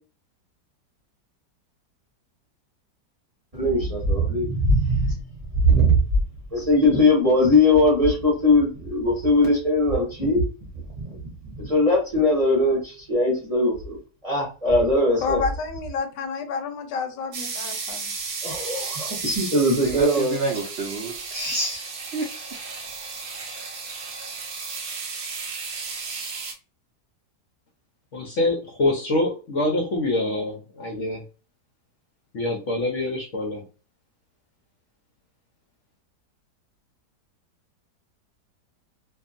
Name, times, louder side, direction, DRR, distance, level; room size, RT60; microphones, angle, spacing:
voice 1, 3.5-5.2 5.5-6.0 6.5-10.5 11.0-15.4 18.4-20.3, left 1 dB, 25° right, 0.9 m, -20 dB
voice 2, 15.2-18.1, left 5 dB, 85° left, 1.2 m, -29 dB
sound 1, 17.3-26.5, right 4 dB, 60° right, 1.1 m, -34 dB
voice 3, 19.8-22.2, right 2 dB, 75° right, 0.5 m, -29 dB
voice 4, 28.1-31.2 32.3-33.6, left 2 dB, 60° left, 0.8 m, -25 dB
2.7 x 2.5 x 2.5 m
omnidirectional pair, 1.9 m